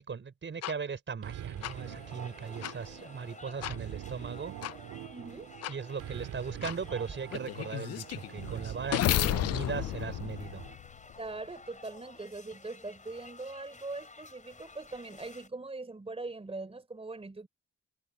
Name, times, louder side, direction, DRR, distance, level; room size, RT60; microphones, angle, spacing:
voice 1, 0.0-4.5 5.7-10.7, right 5 dB, 40° right, 5.1 m, -38 dB
sound 1, 0.6-0.7 1.6-1.7 2.6-2.7 3.6-3.8 4.6-4.7 5.6-5.7 6.6-6.8 7.3-11.2, left 14 dB, 55° left, 0.4 m, -32 dB
sound 2, 1.2-10.8, right 12 dB, 75° right, 2.4 m, -44 dB
sound 3, 1.6-15.5, left 3 dB, 25° left, 5.1 m, -53 dB
voice 2, 5.1-5.5 11.2-17.5, right 3 dB, 20° right, 3.7 m, -41 dB
cardioid pair, 90°, 30 cm